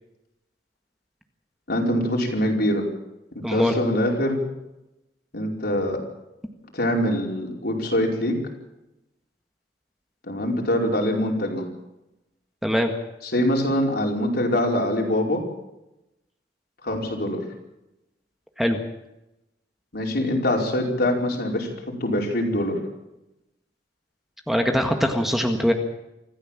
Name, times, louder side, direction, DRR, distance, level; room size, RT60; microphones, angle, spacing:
voice 1, 1.7-2.8 3.3-4.4 5.3-6.0 6.7-8.4 10.3-11.7 13.2-15.4 16.8-17.4 19.9-21.7 22.0-22.8, left 1 dB, 60° left, 0 dB, 5.0 m, -24 dB
voice 2, 3.4-3.8 12.6-12.9 18.6-18.8 24.5-25.7, equal, ahead, 4 dB, 1.7 m, -22 dB
25.5 x 15.0 x 7.5 m, 0.94 s
head